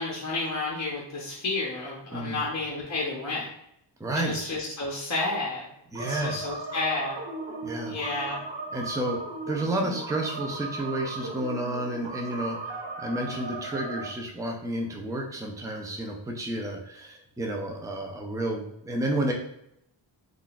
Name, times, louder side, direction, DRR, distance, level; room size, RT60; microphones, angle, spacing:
voice 1, 0.0-3.5 4.1-5.7 6.0-7.2 7.9-8.4, left 3 dB, 40° left, -4 dB, 0.7 m, -31 dB
voice 2, 2.1-2.4 4.0-4.4 5.9-6.4 7.6-8.0 8.7-19.3, right 1 dB, 10° right, 1 dB, 0.4 m, -31 dB
sound 1, 5.9-14.1, right 3 dB, 80° right, 0.8 m, -36 dB
3.6 x 2.5 x 2.3 m, 0.77 s
wide cardioid pair, 95°, 45 cm